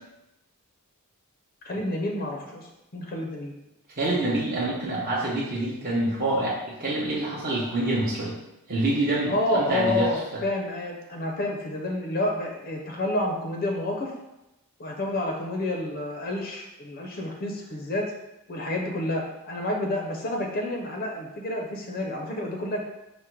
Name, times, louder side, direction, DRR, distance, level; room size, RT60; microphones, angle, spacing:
voice 1, 1.6-3.5 9.3-14.1 14.8-18.1 18.5-22.9, left 1 dB, 45° left, 1 dB, 0.5 m, -29 dB
voice 2, 4.0-8.3 8.7-10.4, right 2 dB, 40° right, -6 dB, 0.7 m, -26 dB
4.9 x 2.1 x 4.4 m, 0.93 s
head